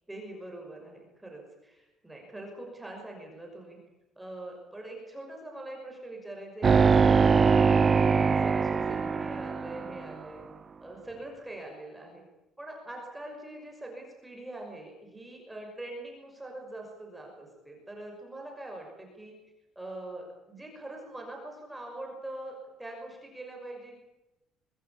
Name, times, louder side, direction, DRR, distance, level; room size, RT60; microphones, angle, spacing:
voice 1, 0.1-3.8 4.2-10.4 10.8-12.2 12.6-19.3 19.8-24.0, right 1 dB, 5° right, 1 dB, 5.9 m, -43 dB
sound 1, 6.6-10.1, right 5 dB, 25° right, 0.8 m, -22 dB
25.0 x 20.0 x 8.7 m, 1.0 s
cardioid pair, 165°, 0 cm